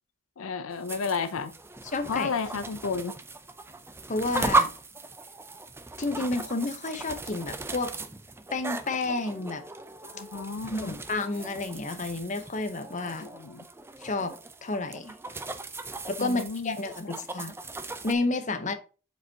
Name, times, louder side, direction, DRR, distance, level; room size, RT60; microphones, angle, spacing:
voice 1, 0.4-1.5 2.1-3.2 10.0-11.0 13.2-13.7 16.2-16.8 17.0-17.1, left 5 dB, 75° left, 0.5 m, -32 dB
sound 1, 0.7-18.1, right 3 dB, 10° right, 0.5 m, -36 dB
voice 2, 1.9-2.3 4.1-4.7 6.0-7.9 8.5-9.6 10.7-13.3 14.0-14.4 14.6-15.1 16.1-17.5 18.0-18.7, left 2 dB, 35° left, 0.8 m, -30 dB
7.9 x 5.2 x 2.8 m
head